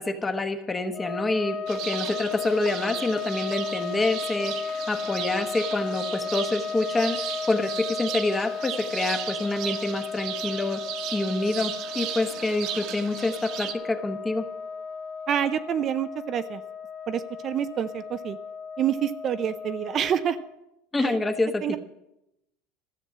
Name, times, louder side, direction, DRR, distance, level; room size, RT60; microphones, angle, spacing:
voice 1, 0.0-7.2 7.5-10.8 11.1-14.5 20.9-21.8, left 2 dB, 15° left, 7 dB, 1.1 m, -27 dB
sound 1, 0.9-20.6, left 5 dB, 45° left, 0.9 m, -35 dB
sound 2, 1.7-13.7, right 10 dB, 60° right, 1.2 m, -36 dB
voice 2, 15.3-16.6 17.1-18.4 18.8-20.4 21.0-21.2 21.6-21.8, right 9 dB, 35° right, 10 dB, 0.5 m, -27 dB
13.5 x 7.0 x 7.5 m, 0.88 s
supercardioid pair, 135°, 0 cm